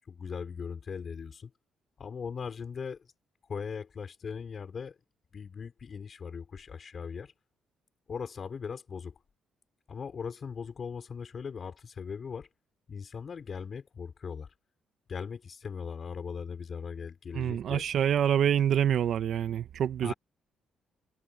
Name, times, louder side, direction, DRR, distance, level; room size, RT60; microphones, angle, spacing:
voice 1, 0.0-1.5 2.0-3.1 3.5-5.0 5.3-7.3 8.1-9.1 9.9-12.5 12.9-14.5 15.1-17.9 20.0-20.1, left 6 dB, 45° left, 5.5 m, -39 dB
voice 2, 17.3-20.1, right 9 dB, 65° right, 1.3 m, -26 dB
cardioid pair, 90°, 0 cm